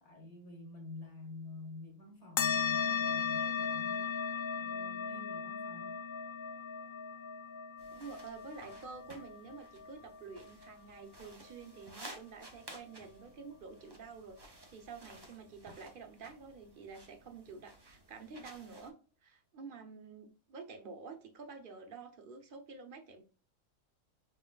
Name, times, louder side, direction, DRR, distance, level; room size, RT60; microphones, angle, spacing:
voice 1, 0.0-4.2 4.5-6.0, left 3 dB, 25° left, 1.5 m, -49 dB
sound 1, 2.4-11.3, left 7 dB, 60° left, 0.5 m, -37 dB
sound 2, 7.8-18.9, right 1 dB, 25° right, 0.6 m, -55 dB
voice 2, 7.9-18.9 19.2-23.2, right 4 dB, 45° right, 0.9 m, -49 dB
5.4 x 3.3 x 2.2 m
omnidirectional pair, 1.4 m